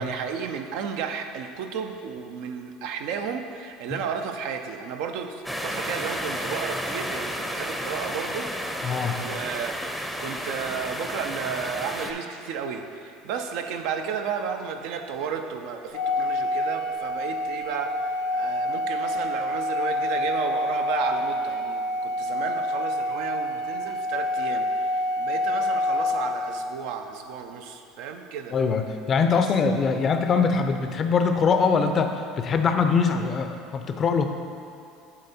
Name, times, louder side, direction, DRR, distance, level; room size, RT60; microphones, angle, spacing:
voice 1, 0.0-8.5 9.1-28.6 29.3-29.4, right 6 dB, 70° right, 6 dB, 0.5 m, -33 dB
sound 1, 5.4-12.1, equal, 5° right, 0.6 m, -32 dB
voice 2, 8.8-9.2 28.5-34.3, left 5 dB, 40° left, 7 dB, 0.5 m, -23 dB
Organ, 15.9-26.8, left 1 dB, 85° left, 0.8 m, -27 dB
8.6 x 3.5 x 4.2 m, 2.5 s
supercardioid pair, 85°, 0 cm